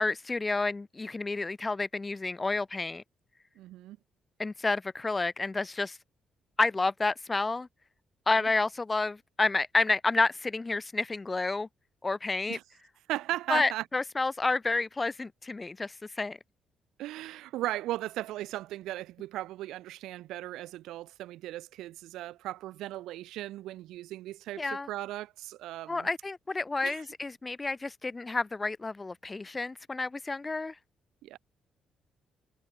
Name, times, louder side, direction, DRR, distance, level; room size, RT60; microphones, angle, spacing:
voice 1, 0.0-3.0 4.4-6.0 6.6-7.7 8.3-11.7 12.0-12.6 13.5-16.4 24.6-24.9 25.9-30.8, left 3 dB, 20° left, 5.5 m, -30 dB
voice 2, 3.6-4.0 8.4-8.5 12.5-12.6 13.1-13.8 17.0-26.1 26.8-27.0 31.2-31.4, right 15 dB, 90° right, 7.1 m, -37 dB
cardioid pair, 90°, 0 cm